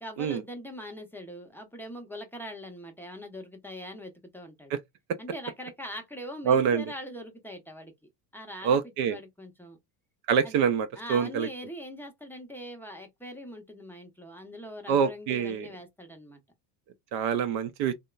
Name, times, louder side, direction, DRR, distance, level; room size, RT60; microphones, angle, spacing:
voice 1, 0.0-4.7 5.2-7.9 8.3-8.8 9.1-9.8 10.4-10.5 11.0-16.4, equal, 5° left, 0.6 m, -42 dB
voice 2, 6.5-6.8 8.6-9.2 10.3-11.5 14.9-15.7 17.1-17.9, right 7 dB, 55° right, 0.5 m, -25 dB
2.9 x 2.1 x 2.2 m
supercardioid pair, 95°, 49 cm